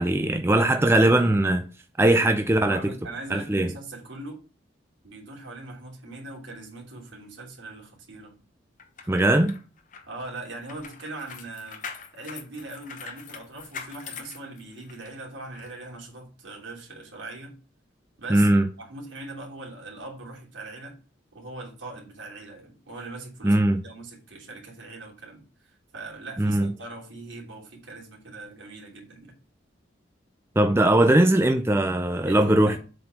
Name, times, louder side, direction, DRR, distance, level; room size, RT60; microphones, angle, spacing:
voice 1, 0.0-1.6 2.0-2.9 3.3-3.7 9.1-9.6 18.3-18.7 23.4-23.8 26.4-26.7 30.6-32.8, right 1 dB, 15° right, 0.5 m, -20 dB
voice 2, 2.0-4.4 5.0-8.3 9.0-9.5 10.1-11.8 12.1-17.6 18.2-21.0 21.3-29.4 32.2-32.8, right 2 dB, 75° right, 3.0 m, -41 dB
sound 1, 8.8-15.1 15.5-15.7, left 6 dB, 40° left, 1.0 m, -42 dB
7.6 x 4.2 x 5.6 m
head